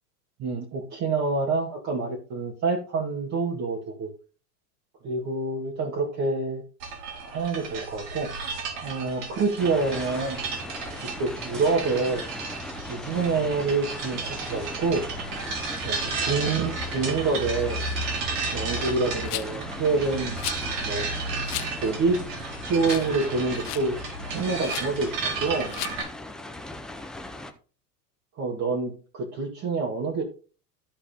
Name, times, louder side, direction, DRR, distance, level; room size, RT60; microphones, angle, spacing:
voice 1, 0.4-4.1 5.0-6.6 7.3-8.3 8.8-10.4 11.2-12.2 12.8-15.1 15.8-17.8 18.5-20.4 20.8-21.1 21.8-22.2 22.6-24.0 24.3-25.7 28.4-28.9 29.3-30.2, right 4 dB, 35° right, -1 dB, 2.1 m, -27 dB
sound 1, 6.8-26.0, right 3 dB, 75° right, 4.1 m, -33 dB
sound 2, 9.6-27.5, left 2 dB, ahead, 0.4 m, -39 dB
Rattle, 19.3-19.6 20.4-20.6 21.4-21.7 22.2-22.3 22.8-23.2 23.4-23.9 24.6-24.9 25.7-26.0, left 15 dB, 70° left, 1.1 m, -34 dB
13.5 x 4.8 x 3.6 m, 0.37 s
supercardioid pair, 130°, 49 cm